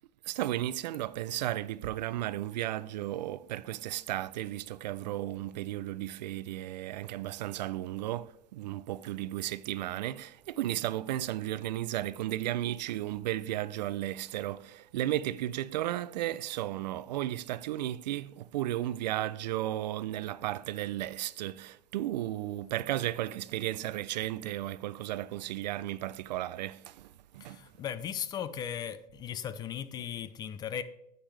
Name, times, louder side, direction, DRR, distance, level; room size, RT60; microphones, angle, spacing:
voice 1, 0.3-27.6, right 14 dB, 85° right, 0.5 m, -34 dB
voice 2, 27.4-30.8, left 9 dB, 20° left, 0.4 m, -37 dB
10.0 x 8.1 x 3.3 m
supercardioid pair, 145°, 21 cm